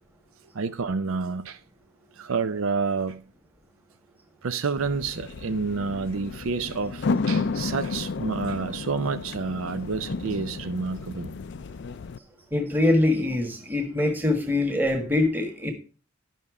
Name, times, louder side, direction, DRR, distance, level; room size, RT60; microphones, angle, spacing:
voice 1, 0.5-1.6 2.2-3.2 4.4-11.3, right 4 dB, 70° right, 0.5 m, -29 dB
sound 1, 4.8-12.2, left 4 dB, 55° left, 0.4 m, -32 dB
voice 2, 12.5-15.7, left 2 dB, 10° right, 1.4 m, -23 dB
11.0 x 5.5 x 4.8 m
head